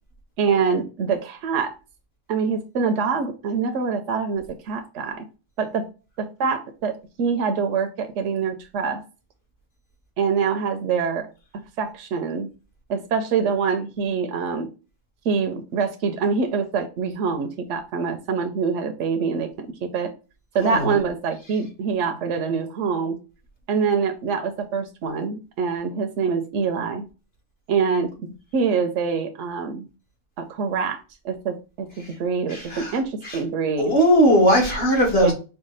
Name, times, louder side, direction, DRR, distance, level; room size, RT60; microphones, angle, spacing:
voice 1, 0.4-1.7 2.3-5.2 5.6-5.9 6.2-9.0 10.2-11.3 11.8-12.5 12.9-14.7 15.2-20.1 20.5-23.2 23.7-27.0 27.7-28.1 28.5-29.9 30.4-31.9 32.2-34.0 35.1-35.3, right 5 dB, 75° right, 5 dB, 0.9 m, -25 dB
voice 2, 20.6-21.0 32.0-32.1 32.5-33.0 33.2-33.4 33.8-35.3, equal, 50° left, 0 dB, 2.0 m, -19 dB
4.8 x 2.2 x 3.9 m, 0.32 s
omnidirectional pair, 1.3 m